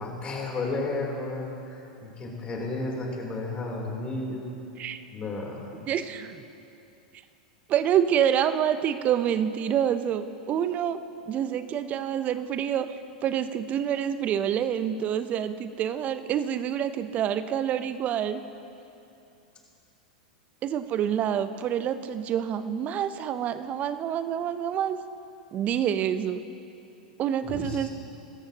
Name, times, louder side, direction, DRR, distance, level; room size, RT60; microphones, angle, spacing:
voice 1, 0.0-4.5 5.1-5.8 27.4-27.9, left 2 dB, 25° left, -1 dB, 3.5 m, -33 dB
voice 2, 5.9-6.4 7.7-11.0 11.3-12.9 13.2-18.4 20.6-25.0 25.5-26.4 27.2-27.9, right 9 dB, 35° right, 11 dB, 0.7 m, -27 dB
23.5 x 13.0 x 3.0 m, 2.8 s
hypercardioid pair, 95°, 4 cm